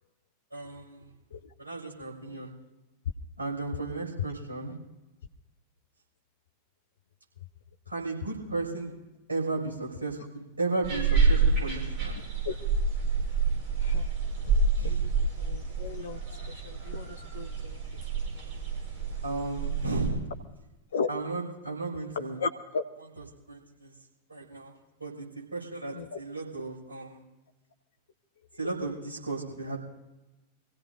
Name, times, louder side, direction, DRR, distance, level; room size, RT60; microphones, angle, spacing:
voice 1, 0.5-1.1 1.6-2.5 3.4-4.8 7.9-8.9 9.3-12.2 14.7-15.1 19.2-20.3 21.1-22.4 23.0-23.9 24.3-24.7 25.0-25.2 25.5-27.2 28.6-29.8, right 3 dB, 75° right, -3 dB, 6.1 m, -34 dB
sound 1, 10.8-20.1, right 4 dB, 40° right, 7.4 m, -28 dB
voice 2, 15.5-16.2 16.8-17.5 20.9-21.1 22.4-22.8 25.9-26.2, left 5 dB, 65° left, 6 dB, 0.6 m, -33 dB
26.0 x 16.5 x 2.7 m, 1.0 s
figure-of-eight pair, 90°, 0 cm